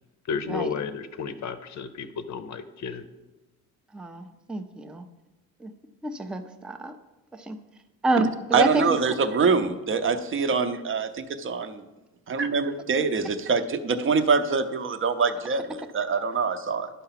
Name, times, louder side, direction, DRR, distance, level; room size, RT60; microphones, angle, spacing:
voice 1, 0.3-3.0, left 6 dB, 55° left, 10 dB, 0.6 m, -32 dB
voice 2, 3.9-5.1 5.6-5.7 6.0-6.9 7.3-7.6 8.0-9.2, right 2 dB, 5° right, 7 dB, 0.4 m, -28 dB
voice 3, 8.5-11.7 12.3-16.9, right 5 dB, 40° right, 10 dB, 0.6 m, -24 dB
11.0 x 5.6 x 5.7 m, 1.1 s
cardioid pair, 160°, 33 cm